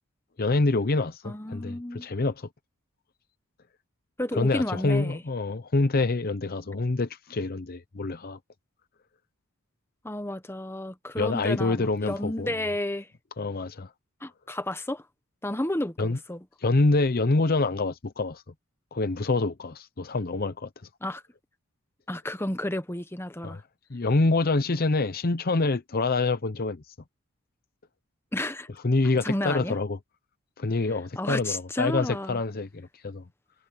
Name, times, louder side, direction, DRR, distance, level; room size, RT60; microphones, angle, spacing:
voice 1, 0.4-2.5 4.3-8.4 11.1-12.6 13.4-13.9 16.0-16.2 16.6-18.4 18.9-20.7 23.4-23.6 23.9-26.9 28.8-30.0 30.6-33.2, left 3 dB, 45° left, 0.7 m, -26 dB
voice 2, 1.2-2.1 4.2-5.2 10.0-13.1 14.2-15.0 15.4-16.4 21.0-21.2 22.1-23.6 28.3-28.7 29.2-29.8 31.2-32.4, left 1 dB, 10° left, 1.1 m, -31 dB
head